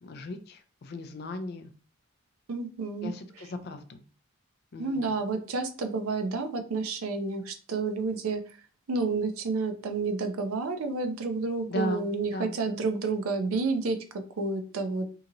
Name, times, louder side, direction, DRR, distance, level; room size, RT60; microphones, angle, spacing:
voice 1, 0.0-1.7 3.0-4.0 4.7-5.1 11.7-12.6, left 1 dB, 50° left, 8 dB, 0.3 m, -36 dB
voice 2, 2.5-3.1 4.8-8.4 8.9-14.0 14.4-15.1, right 3 dB, 90° right, 7 dB, 0.5 m, -30 dB
2.8 x 2.7 x 2.5 m, 0.39 s
head